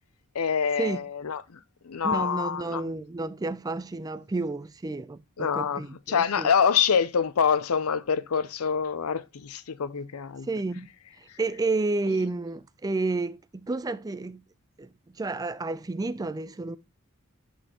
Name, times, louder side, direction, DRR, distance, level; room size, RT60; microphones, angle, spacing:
voice 1, 0.3-1.6 1.8-2.8 5.4-5.8 6.1-10.5, left 6 dB, 75° left, 0.6 m, -26 dB
voice 2, 2.0-6.5 10.5-10.9 11.4-14.4 14.8-16.8, right 3 dB, 15° right, 0.4 m, -31 dB
9.5 x 4.2 x 2.9 m
head